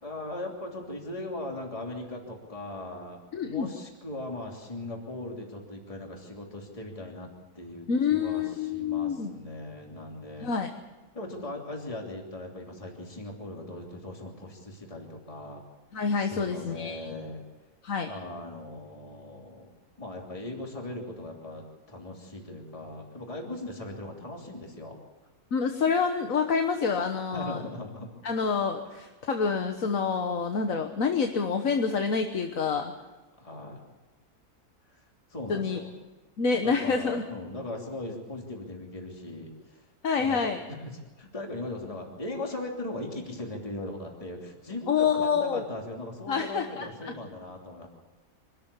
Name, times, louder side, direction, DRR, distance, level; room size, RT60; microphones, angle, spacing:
voice 1, 0.0-7.3 7.5-10.5 11.1-15.6 16.2-17.4 18.0-19.7 20.0-25.0 27.3-28.1 33.4-33.8 34.9-35.0 35.3-35.9 36.6-39.9 40.1-47.9, left 2 dB, 20° left, 0 dB, 3.1 m, -39 dB
voice 2, 3.3-3.7 7.9-9.3 10.4-10.7 15.9-17.1 17.8-18.1 25.5-27.6 28.2-32.9 35.5-35.8 36.4-37.2 40.0-40.6 44.9-45.6 46.3-47.1, left 5 dB, 60° left, 5 dB, 1.6 m, -27 dB
25.0 x 13.5 x 8.5 m, 1.2 s
omnidirectional pair, 1.7 m